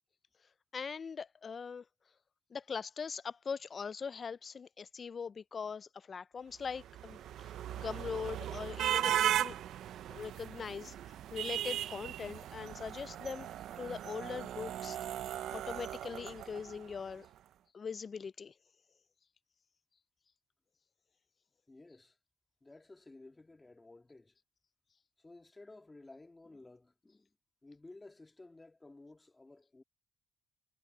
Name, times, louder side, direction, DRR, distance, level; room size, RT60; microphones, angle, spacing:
voice 1, 0.7-1.8 2.5-9.5 10.1-10.9 11.3-13.5 13.8-15.0 15.5-17.3 17.7-18.5, left 6 dB, 40° left, 0.4 m, -41 dB
sound 1, 6.7-17.0, right 11 dB, 75° right, 0.7 m, -37 dB
voice 2, 21.7-22.2 22.6-24.3 25.2-27.3 27.6-29.8, left 2 dB, 20° left, 2.1 m, -55 dB
cardioid pair, 90°, 0 cm